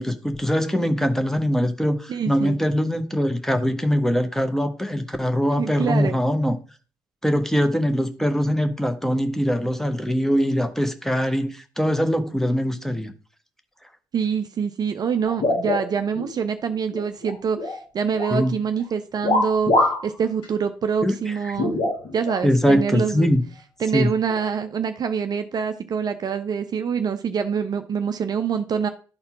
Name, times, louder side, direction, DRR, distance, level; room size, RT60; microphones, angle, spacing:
voice 1, 0.0-6.6 7.2-13.1 18.3-18.5 21.0-21.6 22.4-23.4 23.9-24.1, equal, 5° left, 1.0 m, -22 dB
voice 2, 2.1-2.6 5.6-6.2 14.1-21.7 22.1-23.3 23.8-28.9, right 6 dB, 40° right, 0.6 m, -25 dB
sound 1, 15.3-16.3 16.7-17.8 18.1-18.5 19.2-20.1 20.4-20.5 21.6-22.4 23.3-23.4 24.3-24.5, left 2 dB, 55° left, 2.2 m, -24 dB
11.0 x 4.3 x 3.6 m
figure-of-eight pair, 45°, 10 cm